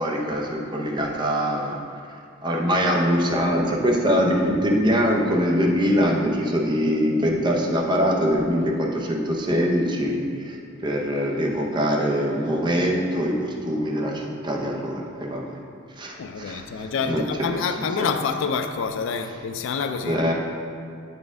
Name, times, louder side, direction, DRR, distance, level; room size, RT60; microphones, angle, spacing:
voice 1, 0.0-1.8 2.4-15.6 16.0-18.2 20.0-20.3, equal, 20° right, 0.6 m, -23 dB
voice 2, 16.2-20.3, left 5 dB, 60° left, 0.3 m, -27 dB
7.6 x 4.3 x 3.5 m
head